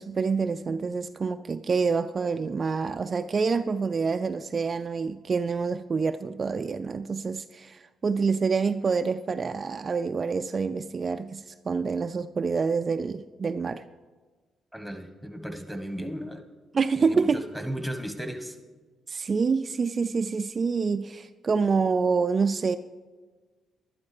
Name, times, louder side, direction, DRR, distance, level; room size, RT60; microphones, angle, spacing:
voice 1, 0.0-13.8 16.7-17.4 19.1-22.8, right 5 dB, 40° right, 9 dB, 0.3 m, -27 dB
voice 2, 14.7-16.4 16.9-18.6, equal, 5° left, 7 dB, 1.3 m, -35 dB
11.5 x 11.0 x 4.9 m, 1.4 s
cardioid pair, 90°, 0 cm